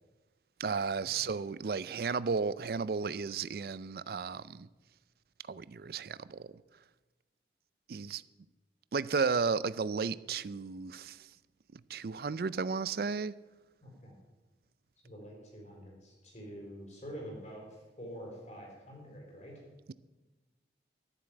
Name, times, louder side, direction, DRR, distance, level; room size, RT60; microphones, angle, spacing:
voice 1, 0.6-4.7 5.5-6.5 7.9-8.2 8.9-11.2 11.7-13.3, right 5 dB, 55° right, 0.4 m, -33 dB
voice 2, 13.8-14.1 15.0-17.7 18.0-19.6, equal, 40° left, 4.4 m, -46 dB
13.0 x 7.3 x 8.9 m
head